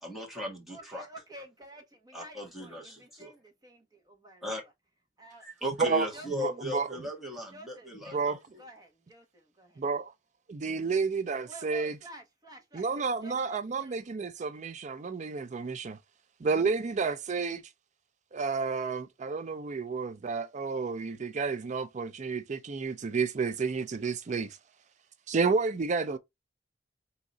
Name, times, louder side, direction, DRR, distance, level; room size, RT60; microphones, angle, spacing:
voice 1, 0.0-1.1 2.1-3.3 4.4-4.6 5.4-8.3, left 1 dB, ahead, 1.7 m, -37 dB
voice 2, 0.7-4.6 5.2-5.5 5.8-6.5 7.5-9.8 11.4-14.0, right 1 dB, 20° right, 1.3 m, -50 dB
voice 3, 6.3-7.1 8.1-8.4 9.8-10.1 10.5-12.0 12.7-16.0 16.4-17.6 18.3-24.5 25.3-26.2, right 4 dB, 40° right, 0.4 m, -30 dB
3.7 x 2.9 x 4.0 m
head